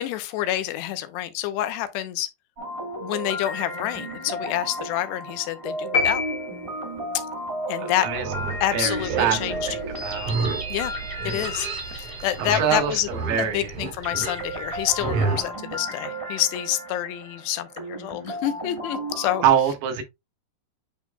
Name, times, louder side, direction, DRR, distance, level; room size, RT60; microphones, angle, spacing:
voice 1, 0.0-2.3 3.0-6.2 7.7-8.1 8.6-9.8 10.4-10.9 11.2-13.1 13.4-19.4, left 13 dB, 90° left, 2.9 m, -28 dB
sound 1, 2.6-13.5 14.0-19.5, equal, 10° right, 2.0 m, -34 dB
sound 2, 5.9-7.2, left 4 dB, 30° left, 2.1 m, -26 dB
voice 2, 7.8-8.2 8.7-9.4 9.7-10.4 12.5-13.7 15.1-15.4 19.4-20.0, right 9 dB, 75° right, 3.2 m, -24 dB
Livestock farm animals working animals, 8.1-15.4, right 4 dB, 55° right, 3.8 m, -31 dB
9.7 x 4.5 x 2.2 m
omnidirectional pair, 4.8 m